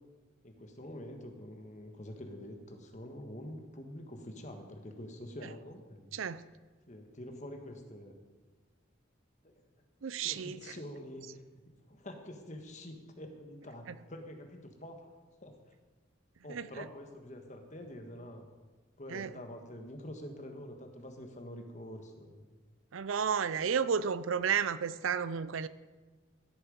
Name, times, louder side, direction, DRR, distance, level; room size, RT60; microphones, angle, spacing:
voice 1, 0.4-6.1 6.9-8.1 9.4-9.6 10.2-11.4 11.9-15.1 15.4-15.6 16.4-18.5 19.0-22.5, left 1 dB, 35° left, 1.4 m, -46 dB
voice 2, 6.1-6.4 10.0-10.7 16.5-16.9 19.1-19.3 22.9-25.7, right 7 dB, 85° right, 0.5 m, -32 dB
15.5 x 8.5 x 5.3 m
head